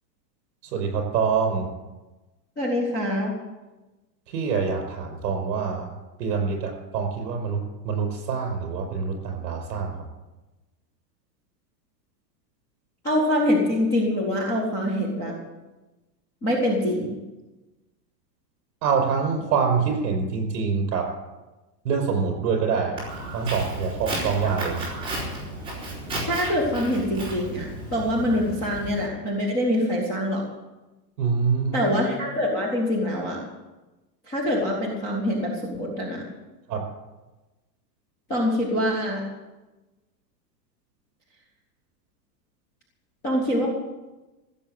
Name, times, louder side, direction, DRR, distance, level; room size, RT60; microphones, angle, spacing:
voice 1, 0.6-1.7 4.3-10.1 18.8-21.1 21.8-23.0 23.3-24.9 31.2-31.9 36.7-36.9, right 5 dB, 70° right, 4 dB, 5.3 m, -25 dB
voice 2, 2.6-3.3 13.0-15.4 16.4-17.2 26.3-30.4 31.7-33.4 34.3-36.2 38.3-39.2 43.2-43.7, left 1 dB, 10° left, -4 dB, 0.4 m, -24 dB
Walk footsteps, 23.0-29.1, right 1 dB, 10° right, 4.1 m, -33 dB
15.5 x 7.2 x 9.0 m, 1.1 s
supercardioid pair, 175°, 49 cm